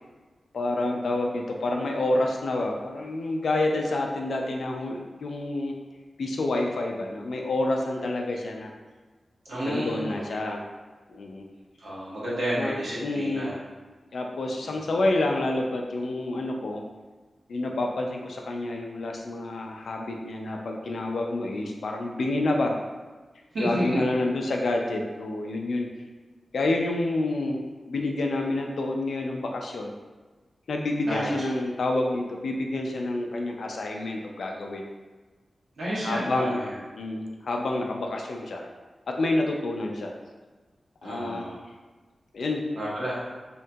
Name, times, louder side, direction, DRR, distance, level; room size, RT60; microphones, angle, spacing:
voice 1, 0.5-5.7 6.2-8.7 9.6-10.6 11.1-11.5 12.6-13.5 14.1-16.8 17.5-22.7 23.6-25.9 26.5-27.6 27.9-29.9 30.7-34.8 36.0-36.6 36.9-38.6 39.1-40.1 41.0-41.4 42.3-42.6, left 2 dB, 75° left, 1 dB, 0.3 m, -28 dB
voice 2, 9.4-10.4 11.8-13.5 14.6-14.9 23.5-24.1 31.0-31.3 35.8-36.7 41.0-41.6 42.7-43.2, right 1 dB, 85° right, -8 dB, 1.0 m, -30 dB
2.8 x 2.2 x 2.7 m, 1.3 s
wide cardioid pair, 140°, 0 cm